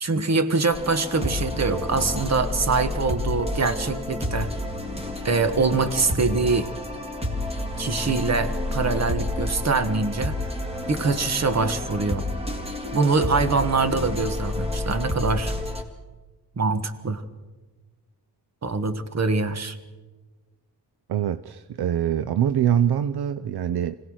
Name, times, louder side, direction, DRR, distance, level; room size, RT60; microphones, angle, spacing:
voice 1, 0.0-4.5 5.2-6.7 7.8-10.3 10.9-12.2 12.9-15.5 16.6-17.2 18.6-19.8, right 4 dB, 40° right, 11 dB, 1.5 m, -24 dB
sound 1, 0.7-15.8, left 1 dB, 15° right, 2.3 m, -30 dB
voice 2, 21.1-24.0, right 9 dB, 70° right, 13 dB, 0.7 m, -24 dB
25.5 x 17.5 x 6.3 m, 1.2 s
wide cardioid pair, 115°, 40 cm